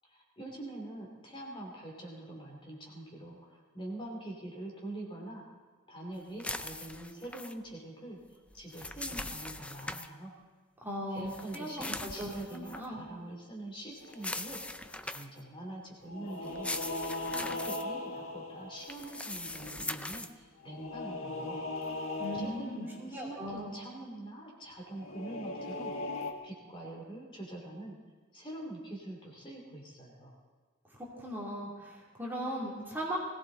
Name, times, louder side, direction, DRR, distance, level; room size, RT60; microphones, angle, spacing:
voice 1, 0.1-5.4 5.9-10.3 11.1-16.8 17.4-21.6 22.3-25.9 26.4-28.0 28.3-30.3, right 1 dB, 25° left, -2 dB, 2.9 m, -44 dB
sound 1, 6.4-7.5 8.5-10.1 11.3-12.9 14.1-15.4 16.4-17.8 18.8-20.3, left 2 dB, 5° left, 0.4 m, -40 dB
voice 2, 10.8-11.3 11.5-13.0 22.2-23.7 31.2-33.2, equal, 10° right, -4 dB, 2.8 m, -38 dB
sound 2, 14.0-14.9 16.0-19.6 20.6-23.0 24.9-26.3, left 2 dB, 75° left, 1.6 m, -39 dB
20.5 x 16.5 x 3.9 m, 1.5 s
head